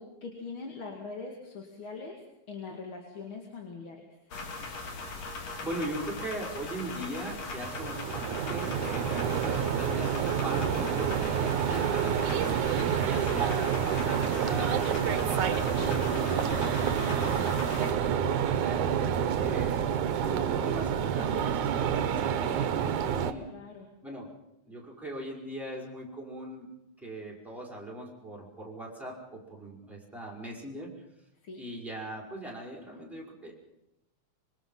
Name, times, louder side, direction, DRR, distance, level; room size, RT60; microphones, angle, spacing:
voice 1, 0.0-2.2 2.5-4.1 16.3-16.6 23.5-23.9 31.4-31.6, left 4 dB, 45° left, 1 dB, 2.9 m, -42 dB
sound 1, 4.3-17.9, left 3 dB, 65° left, 3.7 m, -39 dB
voice 2, 5.6-12.6 13.0-13.8 14.0-19.8 20.2-23.5 24.0-24.3 24.6-26.7 27.0-30.9 31.6-33.5, right 1 dB, ahead, -2 dB, 5.1 m, -40 dB
sound 2, 7.5-23.3, right 8 dB, 90° right, 2.5 m, -28 dB
26.0 x 23.0 x 5.6 m, 0.88 s
omnidirectional pair, 3.3 m